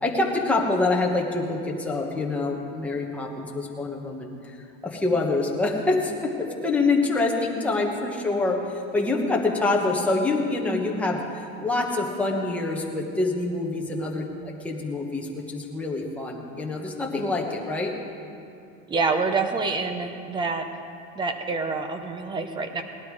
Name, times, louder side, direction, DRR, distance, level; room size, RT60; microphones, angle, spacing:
voice 1, 0.0-4.5 4.8-11.2 11.6-17.9, left 3 dB, 5° left, -1 dB, 1.2 m, -26 dB
voice 2, 18.9-20.7 21.2-22.8, right 4 dB, 15° right, 7 dB, 0.7 m, -27 dB
18.0 x 12.0 x 4.8 m, 2.6 s
cardioid pair, 170°, 31 cm